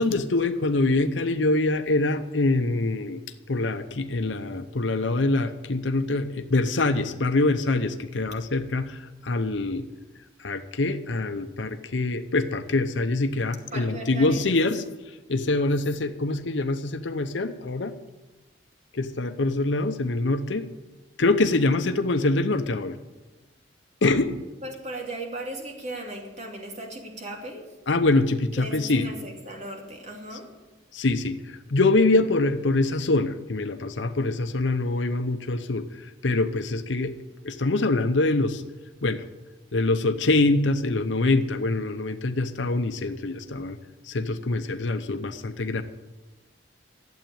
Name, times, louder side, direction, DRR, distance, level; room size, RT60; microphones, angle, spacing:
voice 1, 0.0-3.2 3.5-9.9 10.4-14.8 15.3-17.9 18.9-20.7 21.2-23.0 24.0-24.4 27.9-29.1 30.9-37.1 37.4-38.6 39.0-39.2 39.7-43.8 44.1-45.8, left 2 dB, 80° left, 8 dB, 0.8 m, -24 dB
voice 2, 13.7-14.8 24.6-27.8 28.6-30.6, right 1 dB, 40° right, 1 dB, 2.6 m, -37 dB
12.0 x 8.2 x 9.0 m, 1.1 s
head